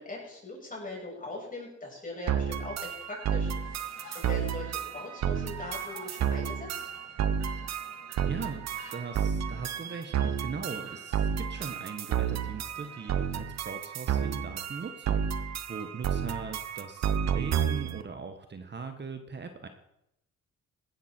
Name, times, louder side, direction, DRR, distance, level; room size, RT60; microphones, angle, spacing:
voice 1, 0.0-6.9, left 2 dB, 25° left, -2 dB, 7.3 m, -41 dB
sound 1, 2.3-18.0, right 8 dB, 60° right, 1.1 m, -31 dB
sound 2, 3.0-3.3 3.7-4.4 4.9-6.1 6.7-7.6 8.0-8.2 8.4-9.1, left 5 dB, 65° left, 2.7 m, -52 dB
sound 3, 3.4-13.5, right 6 dB, 80° right, 3.5 m, -54 dB
voice 2, 8.2-19.7, right 5 dB, 35° right, 7 dB, 1.4 m, -40 dB
16.5 x 13.0 x 4.5 m, 0.82 s
cardioid pair, 90°, 30 cm